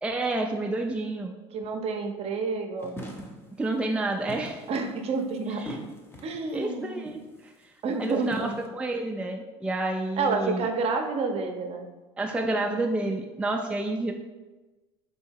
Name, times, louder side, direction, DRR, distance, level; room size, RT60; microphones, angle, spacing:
voice 1, 0.0-1.3 3.6-4.6 5.5-5.8 6.5-7.5 7.9-10.7 12.2-14.1, right 2 dB, 5° right, 2 dB, 0.4 m, -29 dB
voice 2, 1.5-3.0 4.7-5.6 6.2-7.1 7.8-8.5 10.2-11.9, right 4 dB, 45° right, 4 dB, 0.7 m, -29 dB
sound 1, 2.8-3.5 4.3-6.5 7.1-7.4 7.9-8.7, equal, 15° left, 0.7 m, -40 dB
3.8 x 2.7 x 4.5 m, 1.2 s
hypercardioid pair, 85°, 15 cm